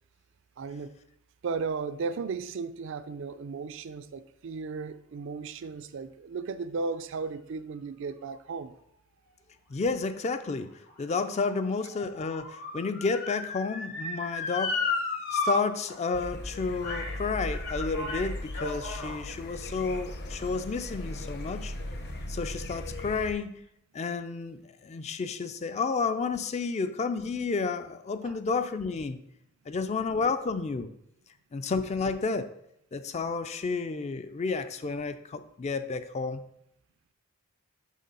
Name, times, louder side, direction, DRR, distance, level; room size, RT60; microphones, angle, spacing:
voice 1, 0.6-0.9 1.4-8.7 28.2-28.4, right 4 dB, 55° right, 0.4 m, -35 dB
voice 2, 9.7-14.8 15.3-21.7 22.3-23.6 23.9-29.2 29.7-30.9 31.5-32.5 32.9-36.4, left 4 dB, 30° left, 0.3 m, -31 dB
Motor vehicle (road) / Siren, 10.4-15.5 15.9-16.0 16.8-17.2 17.5-19.2 19.9-20.0, left 3 dB, 80° left, 2.3 m, -34 dB
sound 1, 16.1-23.3, left 1 dB, 50° left, 0.8 m, -38 dB
6.4 x 3.6 x 5.4 m
head